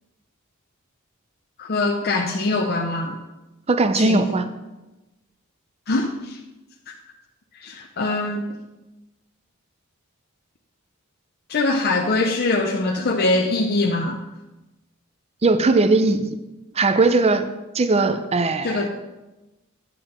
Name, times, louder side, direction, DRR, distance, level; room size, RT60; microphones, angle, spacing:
voice 1, 1.6-3.2 3.9-4.3 5.9-6.4 7.6-8.4 11.5-14.2 18.6-18.9, left 2 dB, 50° left, 2 dB, 0.7 m, -22 dB
voice 2, 3.7-4.5 15.4-16.4 16.8-17.5 17.7-18.9, right 3 dB, 30° right, 10 dB, 0.5 m, -19 dB
10.0 x 7.6 x 4.4 m, 1.1 s
head